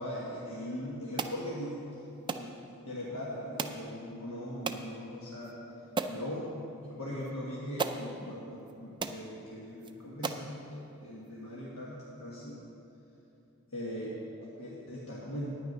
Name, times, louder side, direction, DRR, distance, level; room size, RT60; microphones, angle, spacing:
voice 1, 0.0-2.0 2.3-2.5 2.9-5.6 6.1-12.6 13.7-15.6, equal, 70° left, -6 dB, 1.4 m, -40 dB
sound 1, 1.2-1.4 2.3-2.5 3.6-3.8 4.7-4.9 5.4-5.5 6.0-6.2 7.3-7.4 7.8-8.0 8.7-8.8 9.0-9.2 9.8-9.9 10.2-10.5, right 4 dB, 20° right, 0.3 m, -34 dB
9.6 x 9.3 x 5.3 m, 2.8 s
head